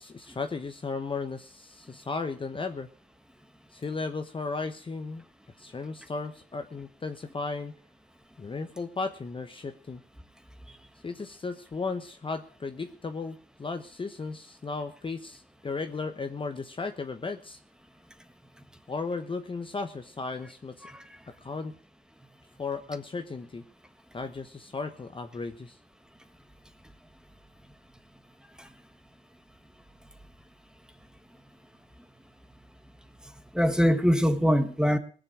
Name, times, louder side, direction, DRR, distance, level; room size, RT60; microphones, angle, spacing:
voice 1, 0.0-2.9 3.7-5.2 5.6-7.8 8.4-10.0 11.0-17.6 18.9-20.9 21.4-21.8 22.6-23.6 24.1-25.8, left 4 dB, 25° left, 7 dB, 1.0 m, -35 dB
voice 2, 33.5-35.0, equal, 5° right, 8 dB, 1.5 m, -23 dB
18.5 x 7.5 x 6.2 m, 0.43 s
cardioid pair, 90°, 20 cm